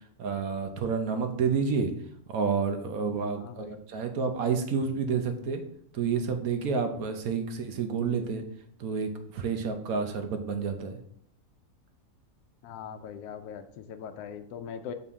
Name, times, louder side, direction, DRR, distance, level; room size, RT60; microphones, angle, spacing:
voice 1, 0.2-1.9 2.3-5.6 5.9-8.4 8.8-11.0, right 5 dB, 70° right, 6 dB, 1.3 m, -29 dB
voice 2, 3.4-3.8 12.6-14.9, left 7 dB, 90° left, 9 dB, 1.1 m, -41 dB
7.0 x 4.2 x 3.6 m, 0.66 s
omnidirectional pair, 1.6 m